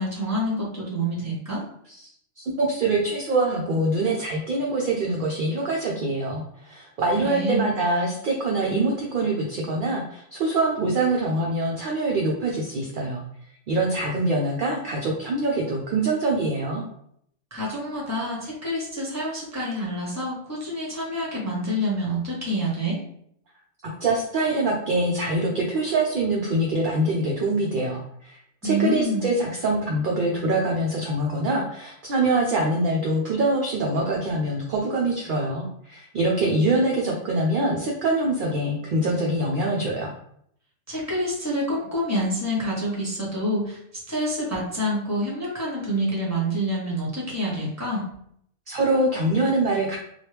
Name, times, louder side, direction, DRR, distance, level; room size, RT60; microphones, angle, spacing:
voice 1, 0.0-1.6 7.2-7.7 17.5-23.0 28.6-29.3 40.9-43.8 44.1-48.1, equal, 15° right, -4 dB, 0.9 m, -27 dB
voice 2, 2.4-13.2 13.7-16.8 24.0-40.1 48.7-50.0, right 2 dB, 60° right, -1 dB, 0.5 m, -24 dB
2.9 x 2.3 x 3.2 m, 0.70 s
omnidirectional pair, 1.3 m